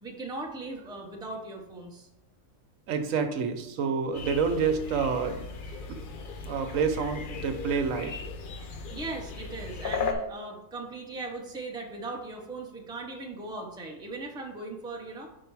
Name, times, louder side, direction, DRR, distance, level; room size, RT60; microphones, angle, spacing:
voice 1, 0.0-2.1 8.9-15.3, right 2 dB, 5° right, 0 dB, 0.6 m, -38 dB
voice 2, 2.9-5.4 6.4-8.1, right 5 dB, 85° right, 7 dB, 1.1 m, -28 dB
sound 1, 4.1-10.1, left 5 dB, 50° left, 0.7 m, -36 dB
5.1 x 4.7 x 4.6 m, 0.90 s
omnidirectional pair, 1.4 m